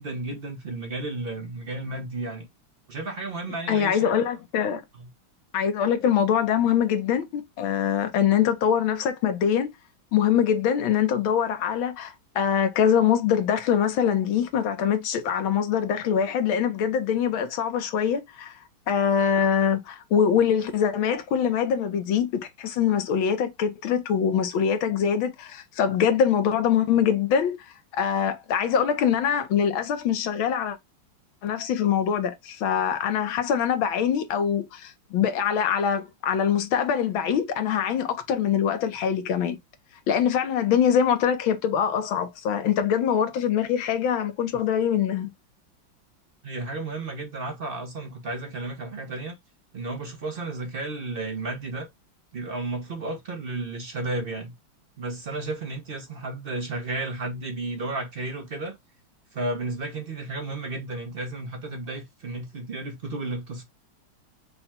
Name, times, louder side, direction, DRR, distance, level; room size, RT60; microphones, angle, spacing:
voice 1, 0.0-2.5 2.9-4.1 4.9-5.1 46.4-49.4 49.7-51.9 52.3-54.5 55.0-58.8 59.3-63.6, right 2 dB, 55° right, 0.6 m, -33 dB
voice 2, 3.7-4.8 5.5-9.7 10.1-18.6 18.9-27.6 27.9-30.8 31.4-39.6 40.1-45.3, left 8 dB, 80° left, 1.7 m, -23 dB
5.3 x 2.3 x 4.3 m
omnidirectional pair, 2.2 m